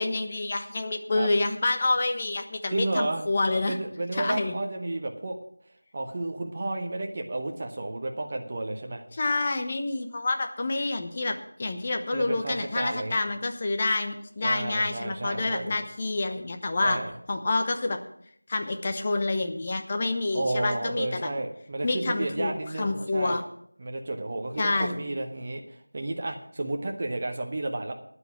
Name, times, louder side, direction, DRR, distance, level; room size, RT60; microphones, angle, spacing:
voice 1, 0.0-3.8 4.1-4.6 9.1-17.0 17.3-18.0 18.5-21.3 21.8-22.5 22.8-23.4 24.6-25.0, left 2 dB, 20° left, 6 dB, 0.9 m, -28 dB
voice 2, 2.7-5.4 5.9-9.0 12.1-13.2 14.4-15.7 16.8-17.1 20.3-23.4 23.8-25.6 25.9-27.9, right 2 dB, 25° right, 3 dB, 0.9 m, -32 dB
10.5 x 9.8 x 6.0 m, 0.66 s
figure-of-eight pair, 175°, 0 cm